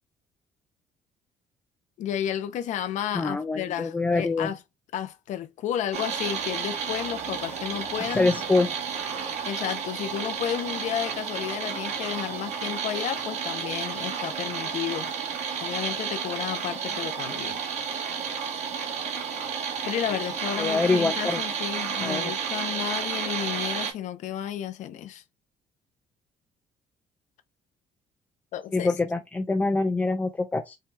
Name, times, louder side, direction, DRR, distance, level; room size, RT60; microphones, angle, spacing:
voice 1, 2.0-4.6 4.9-8.3 9.1-15.1 15.6-17.6 19.4-19.5 19.8-25.2 28.5-28.9, left 10 dB, 65° left, 0.5 m, -32 dB
voice 2, 3.1-4.5 8.1-8.7 20.6-21.4 22.0-22.3 28.7-30.8, left 3 dB, 10° left, 0.4 m, -25 dB
sound 1, 5.9-23.9, right 6 dB, 55° right, 1.4 m, -31 dB
5.4 x 2.2 x 3.2 m
cardioid pair, 150°, 14 cm